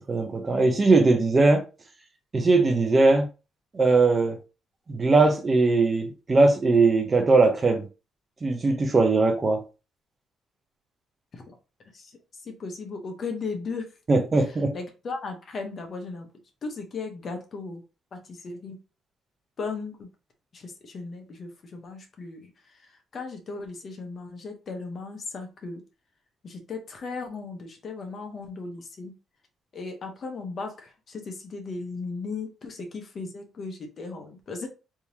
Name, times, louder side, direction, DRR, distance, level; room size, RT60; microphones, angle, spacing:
voice 1, 0.1-1.6 2.3-3.3 3.7-4.4 4.9-7.8 8.4-9.6 14.1-14.7, right 3 dB, 30° right, 0.7 m, -20 dB
voice 2, 12.4-13.9 14.4-16.3 16.6-17.8 18.1-18.8 19.6-20.1 20.5-25.8 26.4-29.1 29.7-34.7, left 4 dB, 50° left, 1.0 m, -36 dB
3.6 x 2.9 x 2.8 m
cardioid pair, 90°, 0 cm